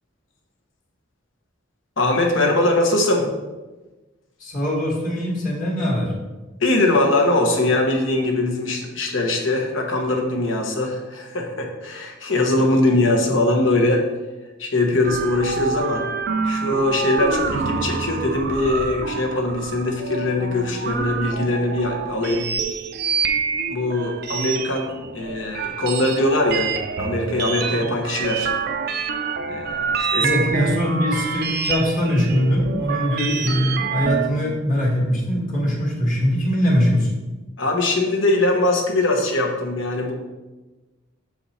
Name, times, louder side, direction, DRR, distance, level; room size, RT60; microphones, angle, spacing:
voice 1, 2.0-3.3 6.6-14.1 14.6-16.0 16.4-22.5 23.7-24.9 25.1-28.5 29.5-30.3 37.6-40.1, left 2 dB, 70° left, 1 dB, 1.1 m, -21 dB
voice 2, 4.4-6.1 30.2-37.1, equal, 40° left, -2 dB, 1.5 m, -21 dB
sound 1, 15.0-34.3, right 5 dB, 50° right, 0.4 m, -27 dB
6.1 x 4.7 x 4.2 m, 1.2 s
head